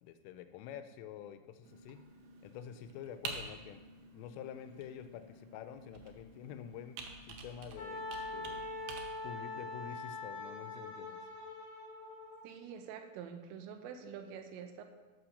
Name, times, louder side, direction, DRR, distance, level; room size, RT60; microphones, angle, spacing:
voice 1, 0.0-2.0 2.4-3.8 4.1-7.0 7.3-8.6 9.2-11.2, left 9 dB, 90° left, 9 dB, 3.2 m, -48 dB
Computer keyboard, 1.6-9.0, right 4 dB, 75° right, 2.4 m, -49 dB
Wind instrument woodwind instrument, 7.8-12.4, left 2 dB, 50° left, 2.7 m, -43 dB
voice 2, 12.4-14.8, right 7 dB, 90° right, 6 dB, 3.5 m, -46 dB
11.5 x 6.0 x 6.4 m, 1.3 s
omnidirectional pair, 5.7 m